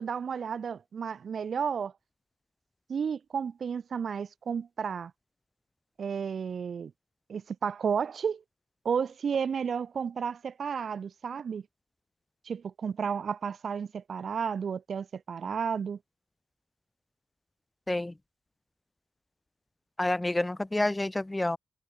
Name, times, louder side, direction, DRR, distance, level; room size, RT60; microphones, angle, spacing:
voice 1, 0.0-1.9 2.9-5.1 6.0-6.9 7.3-8.4 8.8-11.6 12.4-16.0, right 6 dB, 60° right, 1.1 m, -32 dB
voice 2, 17.9-18.2 20.0-21.6, left 1 dB, 15° left, 3.0 m, -28 dB
cardioid pair, 95°, 0 cm